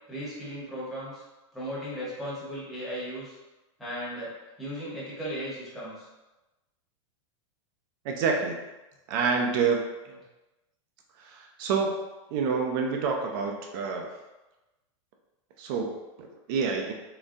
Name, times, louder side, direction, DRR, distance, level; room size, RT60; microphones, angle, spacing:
voice 1, 0.1-1.2 1.5-3.3 3.8-6.1, equal, ahead, -9 dB, 0.9 m, -36 dB
voice 2, 8.0-8.6 9.1-9.8 11.2-12.0 12.3-14.1 15.6-16.9, right 5 dB, 40° right, 2 dB, 0.4 m, -28 dB
3.7 x 2.2 x 2.6 m, 1.1 s
supercardioid pair, 160°, 17 cm